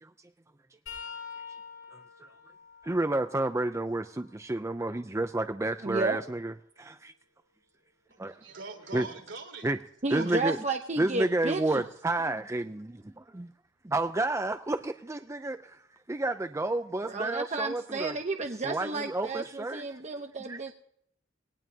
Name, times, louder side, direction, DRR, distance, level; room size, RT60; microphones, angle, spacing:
sound 1, 0.9-4.6 5.1-7.1 10.0-10.2 11.4-11.6 12.9-13.0, left 6 dB, 90° left, 7.0 m, -48 dB
voice 1, 2.8-7.1 8.2-8.4 8.9-9.1 9.6-9.8 10.1-10.6 11.0-13.5 13.8-15.8 16.1-18.1 18.6-20.0 20.5-20.6, right 2 dB, 15° right, 0.5 m, -30 dB
voice 2, 5.8-6.2 10.0-11.9 17.1-20.7, right 3 dB, 35° right, 0.9 m, -32 dB
voice 3, 8.1-9.7 10.0-10.4 12.9-13.0, right 3 dB, 65° right, 3.2 m, -42 dB
21.0 x 18.0 x 2.8 m
head